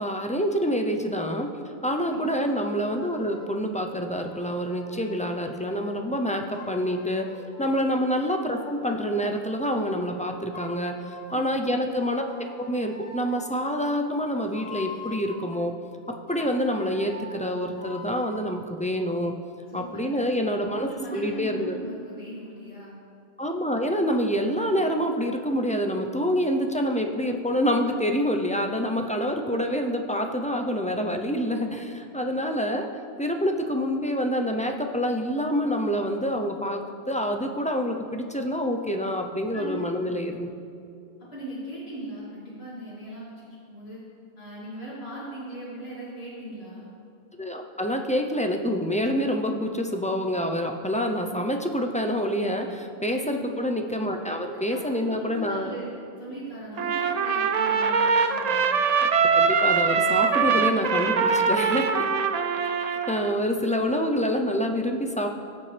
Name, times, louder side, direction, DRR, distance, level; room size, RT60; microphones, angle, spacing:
voice 1, 0.0-1.5 1.8-7.3 7.6-11.0 11.3-12.2 12.7-15.7 16.3-19.3 19.7-21.8 23.4-32.9 33.2-40.5 47.4-55.7 59.0-59.1 59.3-62.0 62.9-65.3, equal, 10° left, 3 dB, 0.5 m, -27 dB
voice 2, 2.0-2.4 7.6-7.8 11.3-11.8 19.7-20.3 20.7-22.9 39.5-40.1 41.2-44.0 44.4-46.9 53.1-53.6 54.5-55.9 56.2-58.7, right 1 dB, 75° left, -10 dB, 3.0 m, -39 dB
sound 1, 2.6-3.6 4.2-7.6 8.3-10.2 10.5-11.6 12.3-15.6 16.3-18.5, left 3 dB, 50° left, 1.7 m, -44 dB
Trumpet, 56.8-63.4, right 5 dB, 50° right, 0.5 m, -23 dB
17.0 x 7.1 x 3.4 m, 2.5 s
omnidirectional pair, 1.1 m